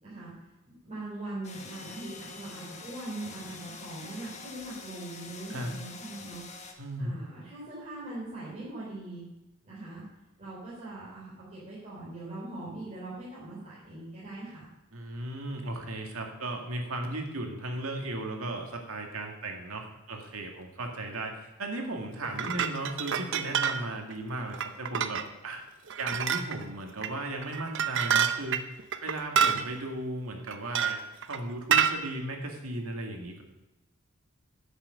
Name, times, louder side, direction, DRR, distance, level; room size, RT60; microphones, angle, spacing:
voice 1, 0.0-0.3 0.8-6.4 6.7-9.2 9.6-10.0 10.4-14.7, right 2 dB, 35° right, -8 dB, 3.6 m, -41 dB
sound 1, 1.4-6.7, left 4 dB, 35° left, 1.4 m, -45 dB
voice 2, 6.8-7.2 14.9-25.6 26.0-28.6 29.0-33.4, right 1 dB, 80° right, 2 dB, 2.1 m, -36 dB
sound 2, 22.2-23.8 24.1-24.2 24.5-25.2 25.9-26.6 27.0-27.1 27.4-29.6 30.5-31.4 31.7-32.0, right 8 dB, 60° right, 0.7 m, -27 dB
10.5 x 8.2 x 6.6 m, 1.0 s
head